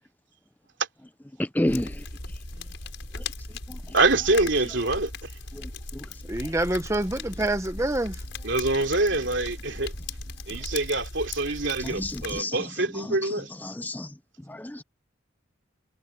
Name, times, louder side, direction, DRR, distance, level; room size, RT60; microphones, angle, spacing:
voice 1, 1.4-2.4 3.1-3.3 3.7-3.9 4.6-4.8 5.5-6.6 11.8-14.8, left 1 dB, 10° left, 0.6 m, -33 dB
sound 1, 1.7-12.4, left 3 dB, 70° left, 5.7 m, -38 dB
voice 2, 3.9-5.3 8.4-9.9 10.5-13.5, right 2 dB, 65° right, 3.2 m, -25 dB
voice 3, 6.3-8.2, right 1 dB, 15° right, 0.9 m, -27 dB
head